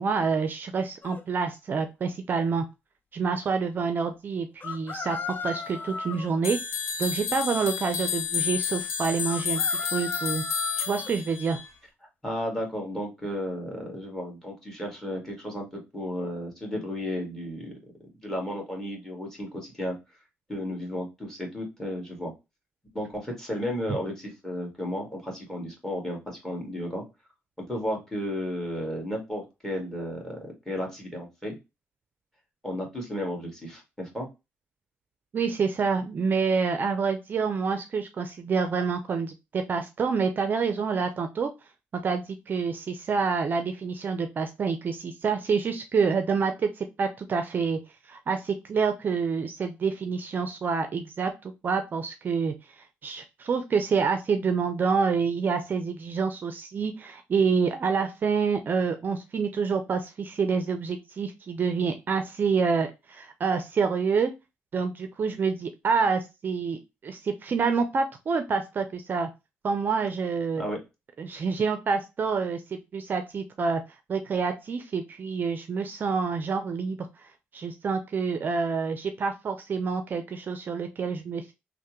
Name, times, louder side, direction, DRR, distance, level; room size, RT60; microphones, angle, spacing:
voice 1, 0.0-2.6 3.1-5.2 5.4-6.6 7.0-9.6 9.9-10.4 10.8-11.6 35.3-41.5 42.0-47.8 48.1-64.3 64.7-69.3 69.6-70.6 71.2-73.8 74.1-77.1 77.5-81.5, right 5 dB, 45° right, 7 dB, 0.4 m, -27 dB
sound 1, 1.0-1.2 4.6-6.3 9.3-11.1, left 3 dB, 40° left, 0.5 m, -35 dB
sound 2, 6.4-11.7, left 7 dB, 85° left, 0.6 m, -30 dB
voice 2, 12.2-17.7 18.2-20.0 20.5-22.3 22.9-27.0 27.6-30.4 30.7-31.6 32.6-34.3 70.6-70.8, equal, 10° left, 1 dB, 1.7 m, -33 dB
3.2 x 2.1 x 3.0 m, 0.24 s
supercardioid pair, 75°, 5 cm